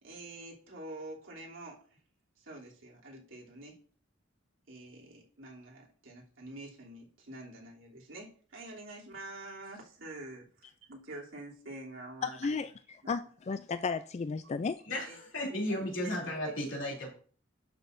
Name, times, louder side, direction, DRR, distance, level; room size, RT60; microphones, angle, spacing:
voice 1, 0.0-1.8 2.4-3.8 4.7-12.4 13.0-13.1 15.1-15.2 15.5-15.6 16.0-16.1 16.4-16.8, right 2 dB, 75° right, 3.0 m, -47 dB
voice 2, 12.2-14.8, left 4 dB, 35° left, 0.3 m, -34 dB
voice 3, 14.9-17.1, left 1 dB, 70° left, 3.0 m, -34 dB
11.5 x 6.2 x 2.6 m
head